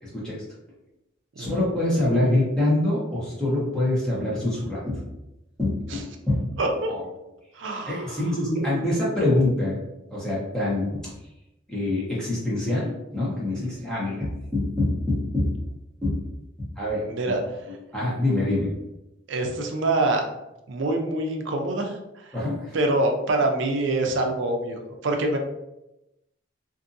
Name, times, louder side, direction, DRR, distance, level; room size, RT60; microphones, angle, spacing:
voice 1, 0.0-0.3 1.4-5.0 5.6-6.4 6.9-7.0 7.9-9.8 10.1-11.1 11.7-15.5 16.0-16.2 16.8-17.0 17.9-18.7 22.3-22.7, left 1 dB, 5° left, -7 dB, 0.9 m, -25 dB
voice 2, 6.6-6.9 7.6-8.2 13.5-13.8 17.1-17.4 19.3-20.2 20.7-22.3 22.7-25.4, right 2 dB, 70° right, 3 dB, 0.5 m, -25 dB
2.6 x 2.6 x 2.5 m, 0.92 s
head